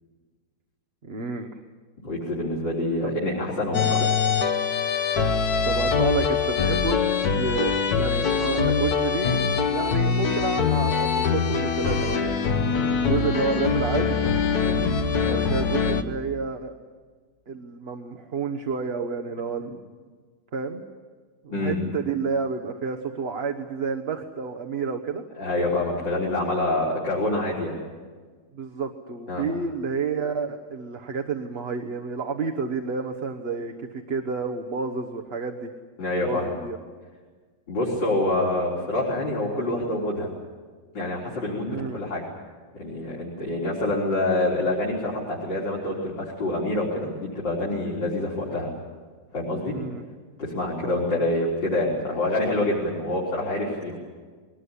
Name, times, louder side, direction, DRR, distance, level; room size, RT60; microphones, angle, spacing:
voice 1, 1.0-1.6 3.0-3.1 5.7-9.4 9.7-12.4 12.9-14.2 15.3-16.7 17.5-19.8 20.5-20.8 21.4-25.2 28.5-35.7 36.2-36.8 41.7-42.0 49.7-50.0 50.8-51.3, right 5 dB, 40° right, 4 dB, 1.3 m, -30 dB
voice 2, 2.0-4.0 14.6-14.9 21.5-21.8 25.4-27.8 29.3-29.5 36.0-36.5 37.7-40.3 40.9-42.2 42.7-48.7 49.3-49.7 50.4-54.0, left 1 dB, 85° left, -6 dB, 4.8 m, -26 dB
sound 1, 3.7-16.0, left 5 dB, 60° left, 1.6 m, -23 dB
22.5 x 19.5 x 9.9 m, 1.5 s
omnidirectional pair, 1.9 m